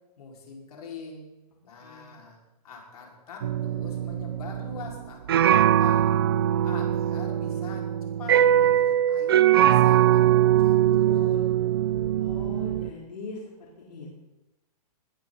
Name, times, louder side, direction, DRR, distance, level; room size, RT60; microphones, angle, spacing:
voice 1, 0.2-1.3 1.6-2.4 2.6-6.2 6.6-11.6, left 4 dB, 70° left, -1 dB, 5.0 m, -43 dB
voice 2, 1.8-2.1 12.2-14.1, left 3 dB, 85° left, -3 dB, 4.0 m, -41 dB
sound 1, 3.4-12.9, right 11 dB, 35° right, 0.4 m, -22 dB
20.5 x 12.5 x 4.0 m, 0.98 s
hypercardioid pair, 170°, 20 cm